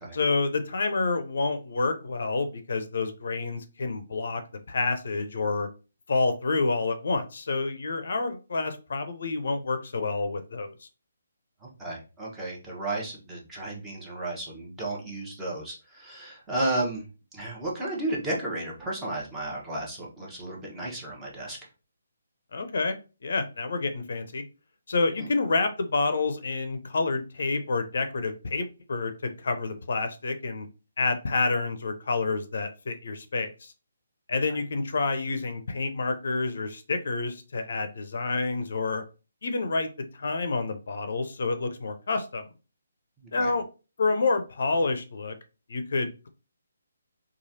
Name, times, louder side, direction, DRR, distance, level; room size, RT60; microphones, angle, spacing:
voice 1, 0.1-4.4 4.7-5.7 6.1-10.9 22.5-23.0 23.2-24.4 24.9-30.7 31.0-33.7 34.3-39.0 39.4-42.5 43.3-43.6 44.0-45.4 45.7-46.3, left 3 dB, 65° left, 8 dB, 0.5 m, -28 dB
voice 2, 11.6-17.0 17.3-21.6 25.2-25.3 43.4-43.5, right 2 dB, 10° right, -4 dB, 0.9 m, -33 dB
3.1 x 2.3 x 2.7 m, 0.32 s
figure-of-eight pair, 150°, 0 cm